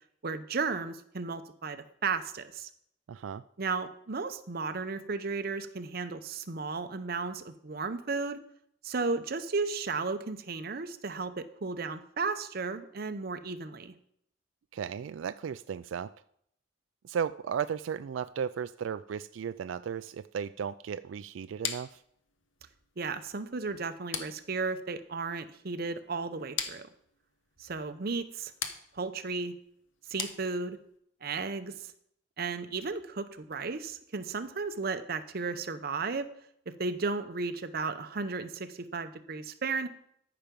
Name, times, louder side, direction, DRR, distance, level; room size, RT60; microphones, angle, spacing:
voice 1, 0.2-2.7 3.6-8.4 8.8-13.9 23.0-26.9 27.6-28.5 28.9-29.5 30.1-30.8 31.2-31.9 32.4-36.3 36.7-39.9, right 4 dB, 55° right, 10 dB, 0.7 m, -34 dB
voice 2, 3.1-3.4 14.7-16.1 17.0-22.0, right 7 dB, 85° right, 12 dB, 0.3 m, -35 dB
sound 1, 21.6-31.0, left 7 dB, 85° left, 1.0 m, -42 dB
13.5 x 5.9 x 5.2 m, 0.70 s
head